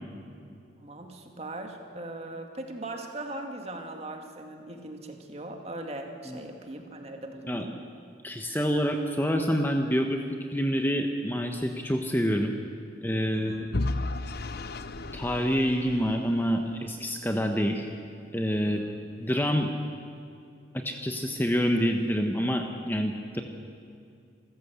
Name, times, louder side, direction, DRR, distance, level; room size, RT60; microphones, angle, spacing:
voice 1, 0.8-7.8 13.3-13.7 17.6-17.8 18.7-18.9, right 1 dB, 35° right, 3 dB, 2.2 m, -39 dB
voice 2, 8.2-10.2 10.5-12.6 13.0-13.5 15.1-17.9 18.3-18.8 19.2-19.7 20.7-23.4, equal, 10° left, 4 dB, 1.0 m, -27 dB
Vehicle / Engine, 13.7-16.7, left 2 dB, 55° left, 0.8 m, -34 dB
27.0 x 14.0 x 8.1 m, 2.5 s
head